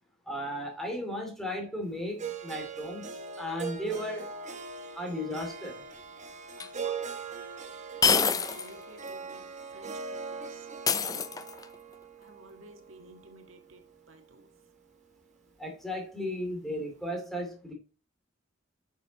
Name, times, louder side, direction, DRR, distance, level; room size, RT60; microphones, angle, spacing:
voice 1, 0.3-3.0 3.4-4.3 5.0-5.8 15.6-17.7, equal, ahead, 2.7 m, -35 dB
Harp, 2.2-14.3, right 5 dB, 35° right, 1.2 m, -41 dB
voice 2, 6.5-7.2 7.9-10.7 11.0-11.3 12.2-14.5, right 2 dB, 80° right, 1.8 m, -54 dB
sound 1, 6.6-6.7 8.0-8.7 9.1-9.2 10.9-11.7, left 5 dB, 20° left, 0.5 m, -26 dB
8.4 x 6.7 x 4.1 m
head